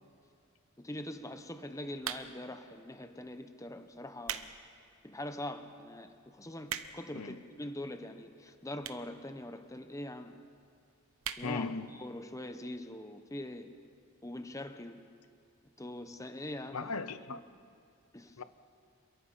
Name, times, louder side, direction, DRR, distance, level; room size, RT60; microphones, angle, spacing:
voice 1, 0.8-4.5 5.0-10.4 11.4-11.6 11.9-13.7 14.2-15.0 15.8-16.9 17.3-17.4 18.1-18.4, left 1 dB, 15° left, 8 dB, 1.0 m, -43 dB
sound 1, 2.0-2.6 3.3-3.5 4.0-4.5 5.0-5.1 5.7-5.8 6.0-6.1 6.3-7.2 7.9-8.0 8.8-9.1 9.4-9.5 9.7-9.8 10.1-10.2 10.5-10.7 11.2-11.5 11.9-12.0 12.2-12.3, right 9 dB, 75° right, 1.0 m, -39 dB
voice 2, 11.4-11.9 16.7-17.4 18.4-18.5, left 4 dB, 85° left, 13 dB, 0.8 m, -37 dB
27.5 x 22.5 x 5.7 m, 2.5 s
head